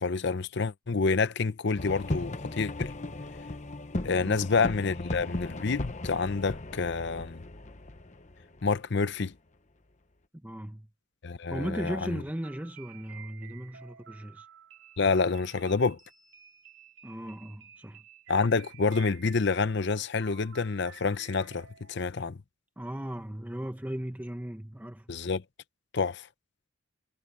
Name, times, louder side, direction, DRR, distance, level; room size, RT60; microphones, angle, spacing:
voice 1, 0.0-2.9 4.0-7.4 8.6-9.3 11.2-12.0 15.0-16.0 18.3-22.4 25.1-25.4 25.9-26.3, left 4 dB, 55° left, 0.7 m, -28 dB
sound 1, 1.8-9.3, left 2 dB, 35° left, 1.0 m, -37 dB
voice 2, 4.2-4.5 10.3-10.9 11.5-14.5 17.0-18.0 22.8-25.1, equal, 10° right, 0.9 m, -37 dB
sound 2, 11.8-22.0, right 8 dB, 75° right, 4.5 m, -53 dB
head